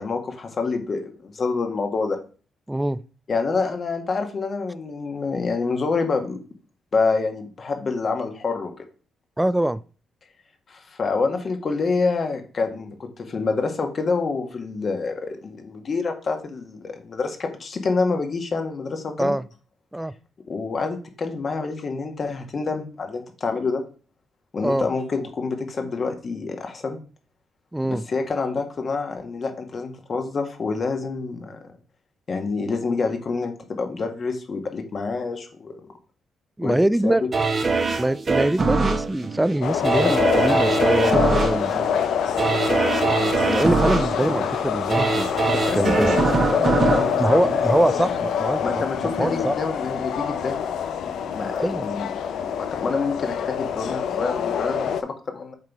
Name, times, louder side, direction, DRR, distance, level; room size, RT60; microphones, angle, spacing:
voice 1, 0.0-2.2 3.3-6.4 6.9-8.8 10.7-19.3 20.5-23.8 24.5-27.0 27.9-31.6 32.3-35.8 36.6-36.8 37.0-37.3 45.5-47.8 48.6-50.5 51.3-55.5, left 4 dB, 50° left, 1.6 m, -27 dB
voice 2, 2.7-3.0 9.4-9.8 19.2-19.5 19.9-20.1 24.6-24.9 27.7-28.0 36.6-37.3 38.0-41.7 43.5-45.3 45.7-46.1 47.2-49.6 51.6-51.9, right 1 dB, 10° right, 0.4 m, -23 dB
sound 1, 37.3-48.3 48.7-48.8, right 4 dB, 45° right, 1.3 m, -23 dB
sound 2, 39.6-55.0, left 8 dB, 75° left, 0.6 m, -25 dB
7.5 x 3.8 x 4.7 m
supercardioid pair, 55°, 0 cm